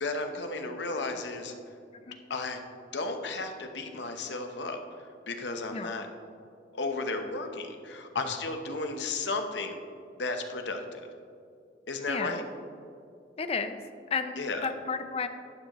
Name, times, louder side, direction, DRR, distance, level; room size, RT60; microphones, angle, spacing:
voice 1, 0.0-1.5 2.3-2.6 2.9-6.1 6.7-9.8 10.2-11.1 11.9-12.4 14.4-14.7, left 3 dB, 85° left, 5 dB, 0.9 m, -34 dB
voice 2, 12.1-12.5 13.4-13.8 14.1-15.3, left 5 dB, 35° left, 9 dB, 0.5 m, -32 dB
11.5 x 9.1 x 3.0 m, 2.4 s
head